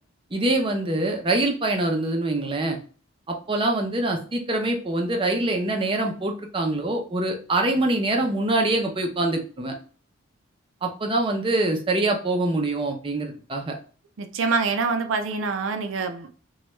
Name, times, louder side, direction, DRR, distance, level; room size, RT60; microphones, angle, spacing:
voice 1, 0.3-2.8 3.3-9.7 10.8-13.8, right 2 dB, 25° right, 0.5 m, -24 dB
voice 2, 14.2-16.3, right 4 dB, 75° right, 0.4 m, -25 dB
3.0 x 2.3 x 3.1 m
head